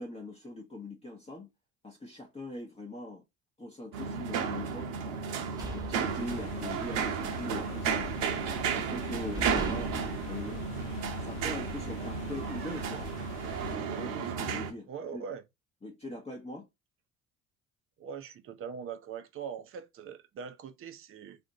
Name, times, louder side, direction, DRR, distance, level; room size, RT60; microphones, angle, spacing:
voice 1, 0.0-1.5 1.8-3.2 3.6-5.2 5.7-8.2 8.7-10.0 10.3-10.8 11.2-13.1 13.7-15.2 15.8-16.7, left 1 dB, 15° left, 0.8 m, -42 dB
sound 1, 3.9-14.7, right 6 dB, 70° right, 0.8 m, -33 dB
sound 2, 5.5-6.8 7.1-7.4 7.8-8.5 9.0-9.1 9.3-11.2, right 1 dB, 10° right, 1.1 m, -41 dB
sound 3, 6.0-13.7, left 6 dB, 65° left, 0.8 m, -45 dB
voice 2, 14.9-15.4 18.0-21.4, right 7 dB, 30° right, 0.5 m, -41 dB
2.5 x 2.1 x 3.8 m
hypercardioid pair, 60°, 42 cm